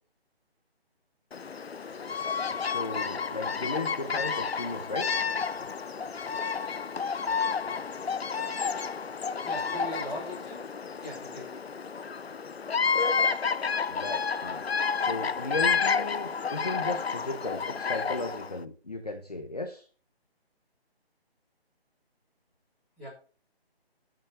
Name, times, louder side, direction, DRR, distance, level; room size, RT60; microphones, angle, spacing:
Bird vocalization bird call bird song, 1.3-18.6, left 5 dB, 70° left, 0.7 m, -30 dB
voice 1, 2.6-5.1 13.9-14.6 15.0-19.8, left 2 dB, 40° left, 5 dB, 1.0 m, -35 dB
voice 2, 9.4-10.6 11.0-11.5 23.0-23.1, right 1 dB, ahead, -17 dB, 1.8 m, -39 dB
13.0 x 6.6 x 4.6 m, 0.39 s
figure-of-eight pair, 180°, 32 cm